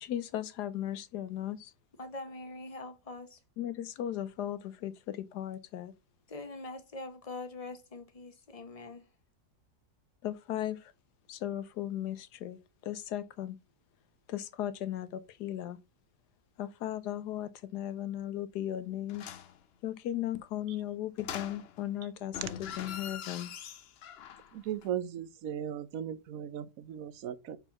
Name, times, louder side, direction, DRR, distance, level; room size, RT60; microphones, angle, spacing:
voice 1, 0.0-1.7 3.6-5.9 10.2-10.9 11.3-12.6 12.9-13.6 14.3-15.8 16.6-19.3 19.8-23.5, left 12 dB, 80° left, 1.3 m, -36 dB
voice 2, 2.0-3.4 6.3-9.1, left 2 dB, 25° left, 1.0 m, -43 dB
sound 1, 19.1-19.6 21.2-21.9 22.3-24.5 24.8-24.9, left 9 dB, 60° left, 0.6 m, -43 dB
voice 3, 24.5-27.6, right 10 dB, 65° right, 1.0 m, -37 dB
5.5 x 4.5 x 5.8 m
omnidirectional pair, 1.7 m